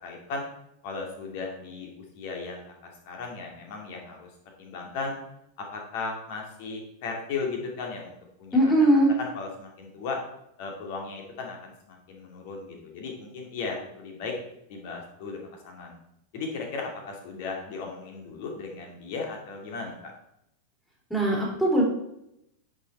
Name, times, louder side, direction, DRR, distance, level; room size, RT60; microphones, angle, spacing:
voice 1, 0.0-0.4 0.8-2.7 3.1-4.3 4.6-5.2 5.6-8.1 8.4-10.2 10.6-14.4 14.7-15.4 15.6-16.0 16.3-20.1, left 4 dB, 50° left, 1 dB, 2.5 m, -36 dB
voice 2, 8.5-9.1 21.1-21.8, right 1 dB, ahead, -4 dB, 3.1 m, -20 dB
9.8 x 6.0 x 4.4 m, 0.80 s
figure-of-eight pair, 90°, 0 cm